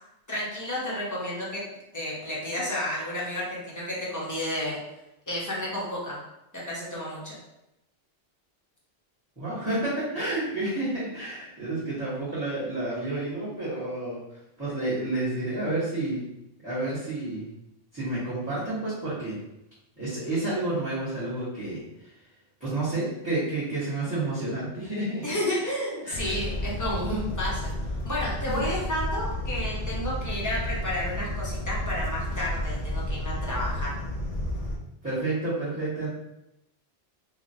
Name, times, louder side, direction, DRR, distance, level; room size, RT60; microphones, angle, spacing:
voice 1, 0.3-1.6 1.9-4.8 5.3-6.2 6.5-7.4 25.2-27.6 28.0-33.9, left 1 dB, 20° left, -6 dB, 0.7 m, -31 dB
voice 2, 9.4-14.2 14.6-16.3 16.6-17.5 17.9-19.4 20.0-22.1 22.6-25.6 26.0-26.4 35.0-36.1, right 2 dB, 10° right, -12 dB, 1.1 m, -30 dB
sound 1, 26.1-34.8, left 1 dB, 55° left, 0.5 m, -31 dB
3.1 x 2.4 x 2.6 m, 0.88 s
omnidirectional pair, 1.1 m